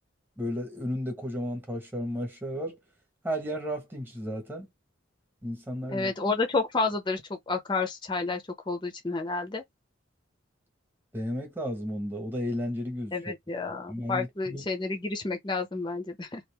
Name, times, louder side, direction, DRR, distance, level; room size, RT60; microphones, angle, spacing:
voice 1, 0.4-2.8 3.2-4.7 5.4-6.1 11.1-13.1 13.9-14.6, equal, 10° right, 1.2 m, -33 dB
voice 2, 5.9-9.6 13.1-16.4, left 3 dB, 25° left, 0.7 m, -30 dB
2.9 x 2.5 x 3.4 m
head